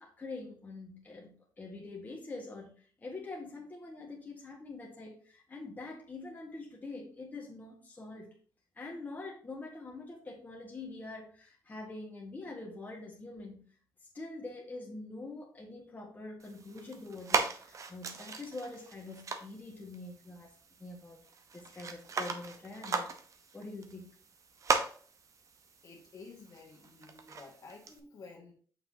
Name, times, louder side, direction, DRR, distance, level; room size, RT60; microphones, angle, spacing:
voice 1, 0.0-2.7 3.0-8.3 8.7-13.6 14.1-20.5 20.8-21.2 21.5-23.1 23.5-24.1, left 2 dB, 20° left, -1 dB, 1.5 m, -45 dB
sound 1, 16.4-28.0, right 4 dB, 45° right, 0.8 m, -38 dB
voice 2, 25.8-28.5, left 4 dB, 55° left, 1 dB, 1.6 m, -52 dB
6.8 x 5.7 x 2.7 m, 0.43 s
cardioid pair, 135°, 8 cm